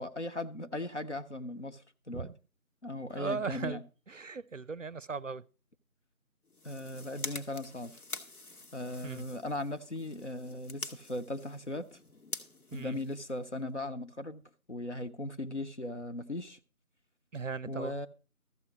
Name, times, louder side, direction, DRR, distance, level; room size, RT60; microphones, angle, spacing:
voice 1, 0.0-2.3 2.8-3.8 6.6-8.0 8.7-12.0 12.7-14.4 14.7-16.6 17.7-18.1, left 1 dB, 55° left, 0.8 m, -38 dB
voice 2, 3.1-3.8 4.1-5.5 9.0-9.3 12.7-13.0 17.3-17.9, right 4 dB, 60° right, 0.5 m, -38 dB
sound 1, 6.4-13.7, left 2 dB, 85° left, 1.5 m, -46 dB
13.5 x 7.3 x 5.1 m
figure-of-eight pair, 175°, 43 cm